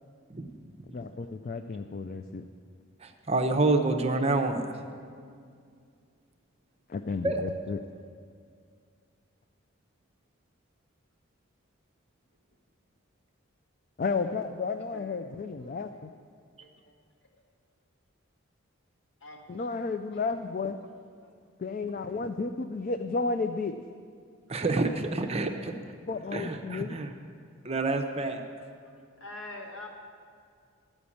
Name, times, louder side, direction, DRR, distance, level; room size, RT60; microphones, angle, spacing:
voice 1, 0.9-2.4 6.9-7.8 14.0-16.1 19.5-20.8 21.6-23.8 26.1-27.0, left 4 dB, 40° left, 8 dB, 0.3 m, -32 dB
voice 2, 3.0-4.9 7.2-7.4 24.5-25.7 26.3-27.1 27.6-28.4, right 2 dB, 30° right, 5 dB, 0.6 m, -28 dB
voice 3, 15.6-16.0 16.6-16.9 17.2-17.3 19.2-19.7 20.1-20.3 21.1-21.3 28.8-29.9, left 2 dB, 60° left, 0 dB, 1.6 m, -46 dB
12.5 x 5.2 x 8.5 m, 2.2 s
head